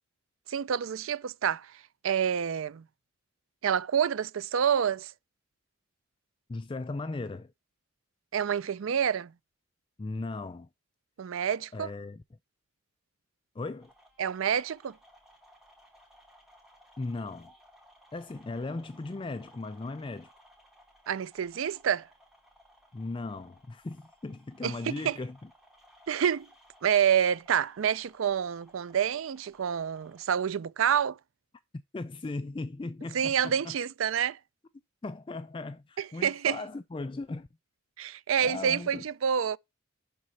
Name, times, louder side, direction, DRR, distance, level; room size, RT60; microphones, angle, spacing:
voice 1, 0.5-1.7 2.0-2.8 3.6-5.1 8.3-9.3 11.2-11.9 14.2-14.9 21.1-22.1 24.6-25.2 26.1-26.5 26.8-31.2 33.1-34.4 36.0-36.6 38.0-39.6, right 8 dB, 80° right, 0.4 m, -28 dB
voice 2, 6.5-7.5 10.0-10.7 11.7-12.2 13.5-13.9 17.0-17.5 18.1-20.3 22.9-25.5 31.9-33.8 35.0-37.5 38.4-39.1, left 3 dB, 25° left, 0.4 m, -37 dB
sound 1, 13.8-30.2, equal, ahead, 2.8 m, -60 dB
11.0 x 4.3 x 4.1 m
head